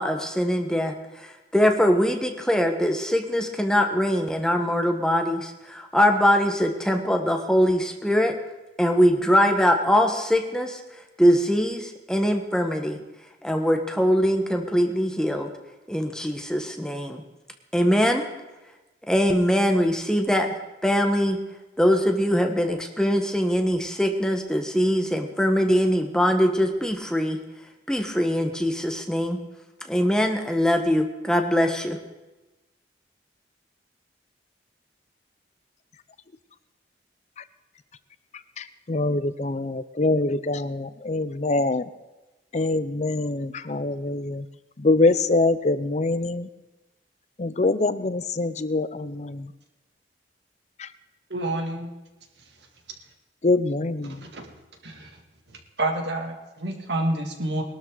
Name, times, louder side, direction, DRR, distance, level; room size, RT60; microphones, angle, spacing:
voice 1, 0.0-8.4 8.8-10.8 11.2-13.0 13.4-15.5 15.9-17.2 17.7-18.2 19.1-20.5 20.8-21.4 21.8-27.4 27.9-29.4 29.9-32.0, equal, 5° left, 4 dB, 1.3 m, -22 dB
voice 2, 38.9-41.8 42.5-44.4 44.8-46.5 47.4-49.1 53.4-54.1, left 2 dB, 40° left, 14 dB, 0.6 m, -24 dB
voice 3, 51.3-51.9 54.0-54.5 54.8-55.1 55.8-57.6, right 2 dB, 75° right, 2 dB, 2.5 m, -28 dB
21.0 x 12.5 x 4.0 m, 1.1 s
head